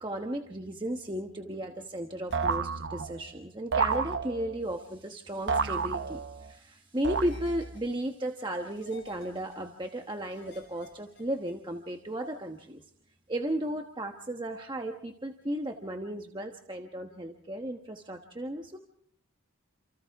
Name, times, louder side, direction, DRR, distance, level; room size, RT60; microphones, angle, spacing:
voice 1, 0.0-12.8 13.3-18.8, right 1 dB, 20° right, 3 dB, 1.2 m, -35 dB
sound 1, 2.3-2.6 3.9-4.2 5.5-5.8 7.1-7.9 8.7-9.5 10.3-11.5, left 2 dB, 55° left, 5.5 m, -54 dB
sound 2, 2.3-3.3 3.7-4.7 5.5-6.5 7.0-7.8, right 5 dB, 55° right, 0.8 m, -31 dB
29.5 x 27.5 x 3.5 m, 0.63 s
head